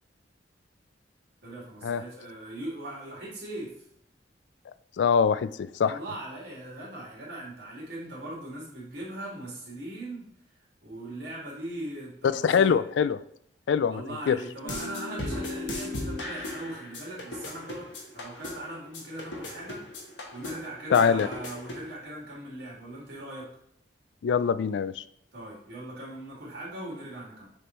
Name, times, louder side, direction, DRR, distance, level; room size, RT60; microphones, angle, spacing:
voice 1, 1.4-3.9 5.8-10.3 10.8-12.8 13.9-17.9 18.1-23.5 25.3-27.5, right 1 dB, 65° right, -6 dB, 2.2 m, -40 dB
voice 2, 5.0-6.0 12.3-13.2 13.7-14.4 20.9-21.3 24.2-25.0, left 6 dB, 70° left, 15 dB, 0.3 m, -23 dB
sound 1, 14.6-21.9, left 2 dB, 90° left, 1.3 m, -37 dB
6.6 x 3.7 x 4.3 m, 0.71 s
head